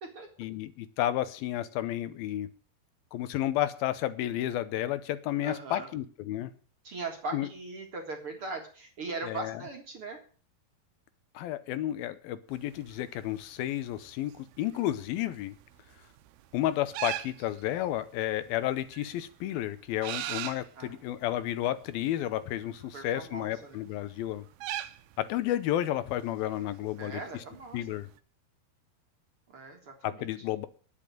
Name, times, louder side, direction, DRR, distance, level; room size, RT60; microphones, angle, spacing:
voice 1, 0.4-2.5 3.1-6.5 7.3-7.5 9.2-9.6 11.3-15.6 16.5-24.5 25.2-27.4 27.7-28.1 30.0-30.7, left 13 dB, 80° left, 13 dB, 2.6 m, -32 dB
voice 2, 5.4-5.9 6.8-10.2 20.8-21.0 21.3-21.4 22.9-23.8 27.0-28.0 29.5-30.3, right 3 dB, 45° right, 3 dB, 2.2 m, -40 dB
sound 1, 12.5-28.2, right 14 dB, 85° right, 2.7 m, -44 dB
10.5 x 8.6 x 9.0 m, 0.41 s
omnidirectional pair, 4.3 m